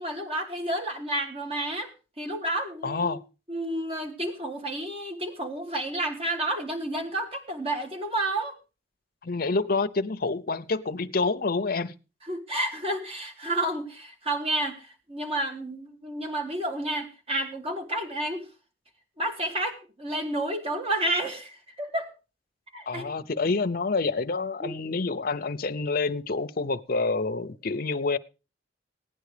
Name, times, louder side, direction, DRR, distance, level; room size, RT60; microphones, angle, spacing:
voice 1, 0.0-1.9 2.2-3.1 3.5-8.6 12.3-18.4 19.2-22.1 22.7-23.1 24.6-24.7, right 1 dB, 35° right, 2.6 m, -30 dB
voice 2, 2.8-3.2 9.2-11.9 22.9-28.2, left 3 dB, 55° left, 0.7 m, -27 dB
16.5 x 9.5 x 5.0 m
head